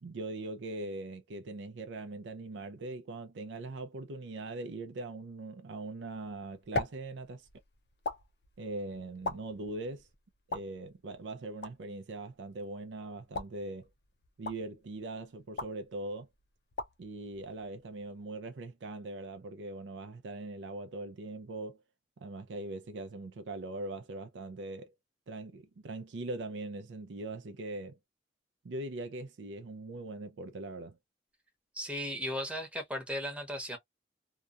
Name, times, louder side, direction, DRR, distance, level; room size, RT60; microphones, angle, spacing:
voice 1, 0.0-7.5 8.6-10.1 10.5-13.9 14.4-16.3 17.0-21.8 22.2-24.9 25.3-28.0 28.6-31.0, right 2 dB, 80° right, 0.5 m, -41 dB
sound 1, 6.1-18.3, left 2 dB, 60° left, 0.6 m, -43 dB
voice 2, 31.8-33.8, equal, 5° right, 0.8 m, -36 dB
2.7 x 2.3 x 2.4 m
head